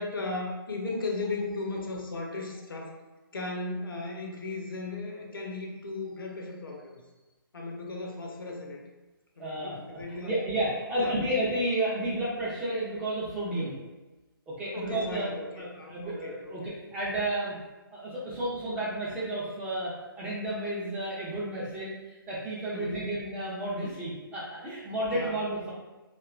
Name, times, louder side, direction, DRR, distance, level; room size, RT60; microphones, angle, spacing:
voice 1, 0.0-2.9 3.3-7.0 7.5-8.8 9.4-10.3 11.0-11.1 14.7-16.5 22.7-23.1 25.1-25.4, left 3 dB, 65° left, 0 dB, 0.6 m, -36 dB
voice 2, 9.4-13.8 14.5-15.3 15.6-17.6 17.9-25.7, right 1 dB, 10° right, -9 dB, 0.4 m, -32 dB
2.8 x 2.2 x 2.4 m, 1.1 s
figure-of-eight pair, 140°, 12 cm